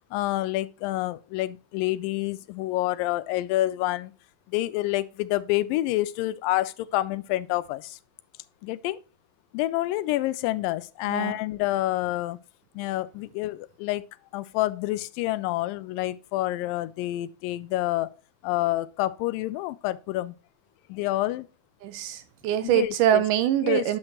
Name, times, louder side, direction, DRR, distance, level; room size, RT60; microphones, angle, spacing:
voice 1, 0.1-4.1 4.5-8.0 8.6-9.0 9.5-12.4 12.8-14.0 14.3-18.1 18.4-20.4 20.9-21.5 22.6-23.2 23.6-23.8, left 16 dB, 80° left, 2.2 m, -28 dB
voice 2, 11.1-11.4 21.8-24.0, right 11 dB, 80° right, 1.9 m, -24 dB
8.9 x 5.9 x 3.0 m
omnidirectional pair, 4.1 m